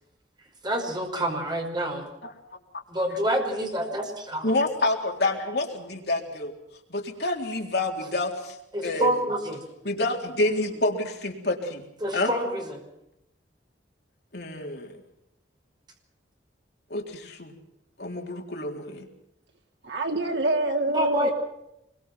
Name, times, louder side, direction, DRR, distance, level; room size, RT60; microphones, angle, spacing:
voice 1, 0.6-2.1 2.9-4.5 8.7-9.6 12.0-12.8 20.9-21.3, right 1 dB, 25° right, 2 dB, 5.5 m, -27 dB
voice 2, 4.4-6.5 6.9-8.6 8.8-9.1 9.8-11.9 12.1-12.3 14.3-15.0 16.9-17.5 18.0-19.1, left 2 dB, 60° left, 2 dB, 3.8 m, -28 dB
voice 3, 19.8-21.3, right 2 dB, 70° right, 2 dB, 3.8 m, -26 dB
25.5 x 23.0 x 6.0 m, 0.83 s
head